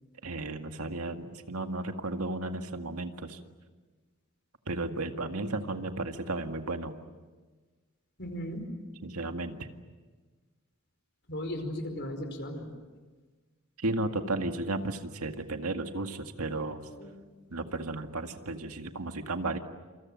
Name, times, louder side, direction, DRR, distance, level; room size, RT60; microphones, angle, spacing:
voice 1, 0.2-3.4 4.7-7.0 9.0-9.7 13.8-16.9 17.5-19.6, right 2 dB, 90° right, 6 dB, 2.0 m, -34 dB
voice 2, 8.2-8.6 11.3-12.7 16.9-17.1, left 1 dB, 50° left, 6 dB, 4.9 m, -36 dB
27.5 x 27.5 x 7.6 m, 1.3 s
head